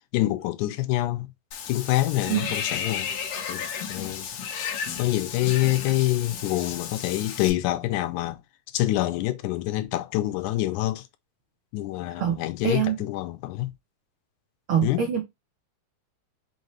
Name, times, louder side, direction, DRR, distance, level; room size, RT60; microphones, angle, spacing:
voice 1, 0.1-1.3 1.7-3.1 3.5-4.3 5.0-8.4 8.7-11.0 11.7-13.7 14.8-15.0, left 16 dB, 85° left, 2.1 m, -26 dB
Water / Bathtub (filling or washing), 1.5-7.5, left 7 dB, 65° left, 1.9 m, -33 dB
voice 2, 12.2-13.0 14.7-15.2, right 9 dB, 80° right, 1.2 m, -25 dB
5.6 x 2.7 x 3.0 m
omnidirectional pair, 3.4 m